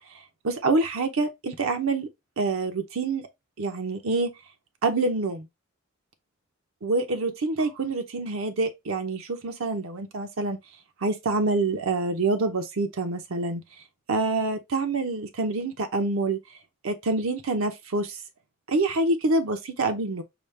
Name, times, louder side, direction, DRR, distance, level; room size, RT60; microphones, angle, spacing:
voice 1, 0.4-2.1 2.4-3.3 3.6-4.3 4.8-5.5 6.8-10.6 11.0-13.6 14.1-16.4 16.8-18.2 18.7-20.2, right 3 dB, 80° right, 0.7 m, -26 dB
4.9 x 2.1 x 3.2 m
head